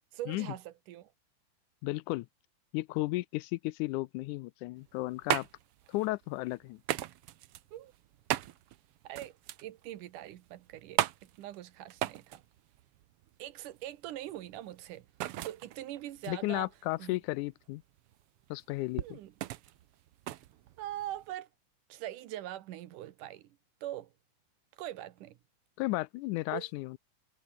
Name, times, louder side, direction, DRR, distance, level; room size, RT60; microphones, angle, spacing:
voice 1, 0.1-1.1 7.7-7.9 9.0-9.4 9.6-12.4 13.4-15.1 15.5-16.7 17.0-17.2 19.0-19.3 20.8-21.5 21.9-24.1 24.8-25.4 26.5-26.7, right 13 dB, 90° right, 2.8 m, -42 dB
voice 2, 1.8-2.3 2.7-5.5 5.9-6.8 16.3-17.8 18.5-19.2 25.8-27.0, left 20 dB, 85° left, 2.0 m, -34 dB
sound 1, 4.8-21.3, right 14 dB, 70° right, 1.4 m, -38 dB
omnidirectional pair, 3.5 m